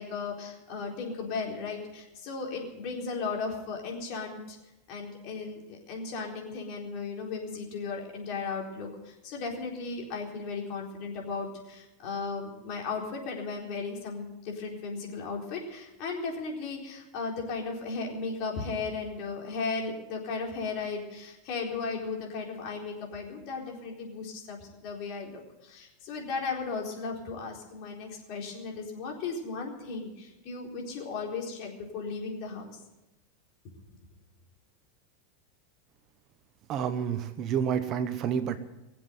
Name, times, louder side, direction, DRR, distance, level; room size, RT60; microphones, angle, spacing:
voice 1, 0.0-4.6 4.9-32.8, left 4 dB, 50° left, 0 dB, 4.2 m, -36 dB
voice 2, 36.7-38.6, right 8 dB, 35° right, 10 dB, 1.0 m, -29 dB
21.5 x 7.8 x 8.0 m, 0.96 s
supercardioid pair, 145°, 0 cm